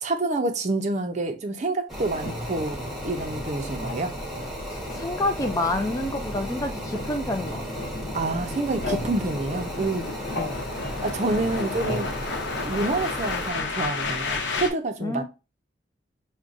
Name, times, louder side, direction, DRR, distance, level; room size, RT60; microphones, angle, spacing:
voice 1, 0.0-4.1 8.1-10.1 11.0-12.1 12.6-15.2, right 2 dB, 40° right, 0.5 m, -28 dB
sound 1, 1.9-13.5, equal, ahead, 0.9 m, -36 dB
sound 2, 2.0-12.3, left 1 dB, 65° left, 1.1 m, -37 dB
voice 2, 4.7-7.9 10.3-10.5 15.0-15.2, left 2 dB, 20° left, 0.3 m, -28 dB
sound 3, 5.2-14.7, left 3 dB, 80° left, 0.8 m, -33 dB
6.1 x 2.2 x 2.5 m
head